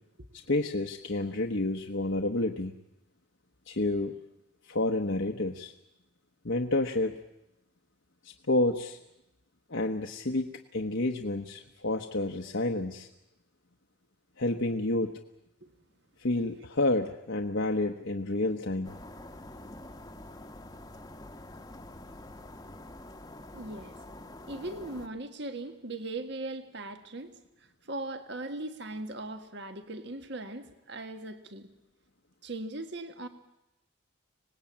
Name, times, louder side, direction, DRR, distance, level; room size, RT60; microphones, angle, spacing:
voice 1, 0.5-2.7 3.7-4.1 4.7-5.7 6.4-7.2 8.2-9.0 9.7-13.1 14.4-15.2 16.2-18.9, left 2 dB, 65° left, 2 dB, 1.1 m, -29 dB
sound 1, 18.8-25.1, left 1 dB, 20° left, 1.1 m, -46 dB
voice 2, 23.5-24.0 24.5-31.7 32.4-33.3, right 2 dB, 55° right, 8 dB, 1.6 m, -39 dB
25.5 x 19.0 x 8.7 m, 0.91 s
head